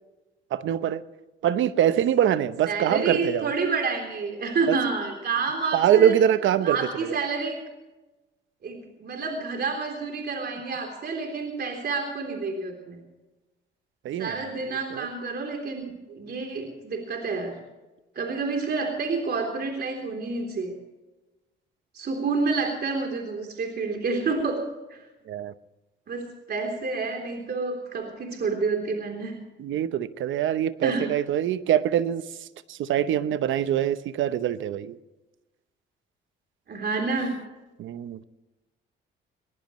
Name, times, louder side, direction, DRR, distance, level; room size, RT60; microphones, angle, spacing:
voice 1, 0.5-1.0 1.4-3.5 4.7-4.8 5.7-7.2 14.0-15.1 25.3-25.5 29.6-32.3 32.7-35.0 37.8-38.2, right 10 dB, 75° right, 13 dB, 0.9 m, -24 dB
voice 2, 2.7-6.1 6.6-7.6 8.6-13.0 14.2-17.6 18.1-20.8 21.9-25.0 26.1-29.4 30.8-31.1 36.7-37.4, right 4 dB, 55° right, 2 dB, 3.5 m, -29 dB
20.0 x 19.5 x 3.2 m, 1.1 s
cardioid pair, 90°, 20 cm